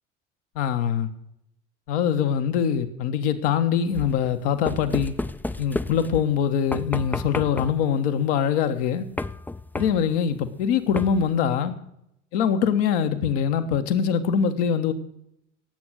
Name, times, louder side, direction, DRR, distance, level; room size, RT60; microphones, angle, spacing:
voice 1, 0.5-1.1 1.9-5.2 5.6-9.0 9.7-11.8 12.3-14.9, left 7 dB, 65° left, 1.3 m, -23 dB
sound 1, 3.9-6.3 6.7-7.9 9.2-10.2 11.0-11.4, left 2 dB, 5° left, 0.5 m, -32 dB
18.0 x 8.0 x 6.3 m
figure-of-eight pair, 55°, 36 cm